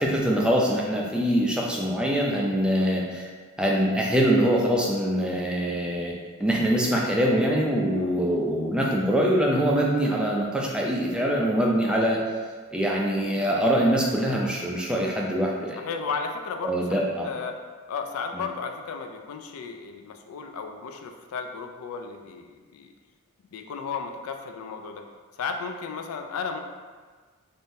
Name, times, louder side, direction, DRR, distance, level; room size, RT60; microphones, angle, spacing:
voice 1, 0.0-3.3 3.6-6.1 6.4-12.2 12.7-15.8 16.6-17.3, equal, 5° right, -2 dB, 0.3 m, -24 dB
voice 2, 15.8-17.6 17.9-22.9 23.5-25.1 25.3-26.6, left 5 dB, 75° left, 5 dB, 0.3 m, -34 dB
3.6 x 2.6 x 2.6 m, 1.5 s
head